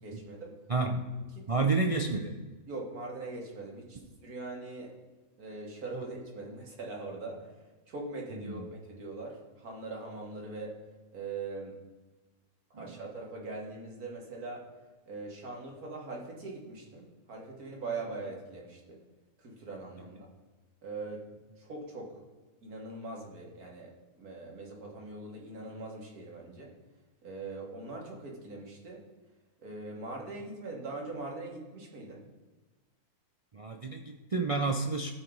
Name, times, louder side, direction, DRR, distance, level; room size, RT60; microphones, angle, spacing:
voice 1, 0.0-0.5 1.3-1.7 2.7-4.9 5.4-7.5 7.9-10.8 11.1-11.8 12.7-14.6 15.1-19.0 19.4-20.3 20.8-21.2 21.6-22.1 22.6-26.7 27.2-29.0 29.6-32.2, right 3 dB, 80° right, -1 dB, 2.3 m, -41 dB
voice 2, 0.7-1.0 1.5-2.3 8.4-8.6 12.7-12.9 33.5-35.1, right 3 dB, 65° right, 2 dB, 0.3 m, -30 dB
14.0 x 4.6 x 3.9 m, 1.3 s
omnidirectional pair, 1.6 m